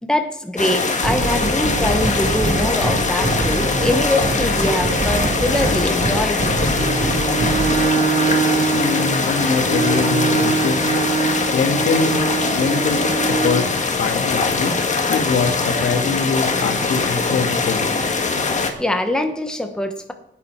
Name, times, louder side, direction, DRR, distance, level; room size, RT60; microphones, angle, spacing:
voice 1, 0.0-6.5 18.8-20.1, left 1 dB, 5° left, 6 dB, 1.2 m, -23 dB
sound 1, 0.6-18.7, left 4 dB, 40° left, 1.7 m, -22 dB
sound 2, 1.0-7.7, right 2 dB, 55° right, 3.8 m, -24 dB
Bowed string instrument, 6.6-13.7, right 5 dB, 35° right, 1.8 m, -23 dB
voice 2, 8.7-10.9 11.5-12.2 12.5-17.9, left 5 dB, 70° left, 5 dB, 1.9 m, -23 dB
15.5 x 9.8 x 4.6 m, 0.85 s
cardioid pair, 100°, 19 cm